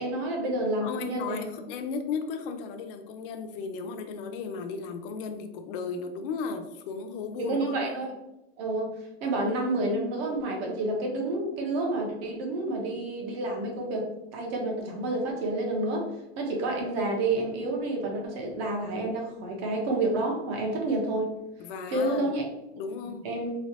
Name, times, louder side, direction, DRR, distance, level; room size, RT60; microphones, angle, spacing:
voice 1, 0.0-1.4 7.4-8.1 8.6-8.9 9.2-21.3 21.9-22.5 23.0-23.5, right 2 dB, 60° right, 1 dB, 1.0 m, -29 dB
voice 2, 0.8-7.8 21.6-22.3 22.7-23.2, left 5 dB, 50° left, 6 dB, 0.5 m, -35 dB
3.2 x 2.9 x 2.7 m, 0.91 s
supercardioid pair, 170°, 35 cm